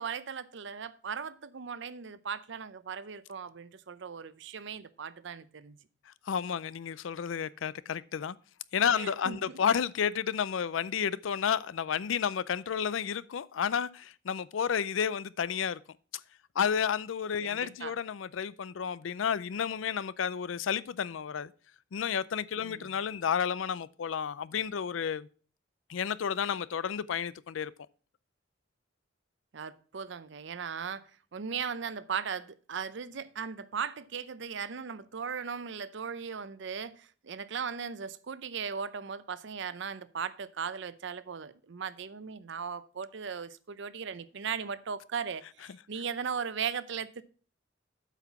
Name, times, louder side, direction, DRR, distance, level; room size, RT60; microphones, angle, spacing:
voice 1, 0.0-5.8 8.9-9.6 17.4-17.9 22.6-23.0 29.5-47.2, right 6 dB, 65° right, 0.6 m, -38 dB
voice 2, 6.1-8.4 8.7-15.8 16.6-21.5 21.9-25.3 25.9-27.7, left 7 dB, 90° left, 0.4 m, -31 dB
8.2 x 5.8 x 5.9 m
head